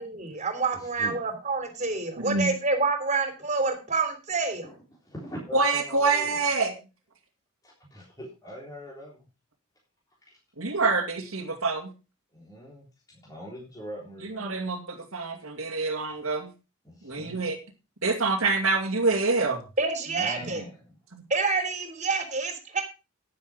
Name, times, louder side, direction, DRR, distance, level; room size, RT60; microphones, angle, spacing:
voice 1, 0.0-4.7 19.8-20.6 21.3-22.8, right 4 dB, 35° right, 7 dB, 3.4 m, -28 dB
voice 2, 2.2-2.5 5.5-6.7 10.6-11.9 14.2-16.5 17.0-17.6 18.0-19.6 21.1-21.2, right 3 dB, 80° right, 2 dB, 2.3 m, -26 dB
voice 3, 5.1-6.4 7.6-9.3 12.3-12.9 13.1-14.6 16.8-17.5 20.1-20.9, equal, 15° left, -4 dB, 3.7 m, -42 dB
10.5 x 10.5 x 5.0 m, 0.30 s
head